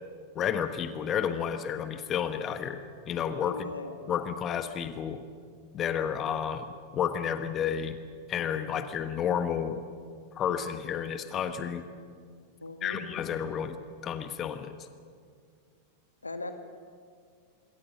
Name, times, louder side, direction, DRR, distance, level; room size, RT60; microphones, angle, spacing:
voice 1, 0.3-3.7 4.1-5.2 5.7-6.7 6.9-8.0 8.3-9.8 10.3-11.9 12.8-13.8 14.0-14.7, left 8 dB, 30° left, 9 dB, 1.3 m, -31 dB
voice 2, 3.4-4.0 12.6-13.1 16.2-16.5, left 2 dB, 80° left, 7 dB, 2.0 m, -38 dB
26.0 x 23.5 x 6.8 m, 2.1 s
figure-of-eight pair, 90°, 0 cm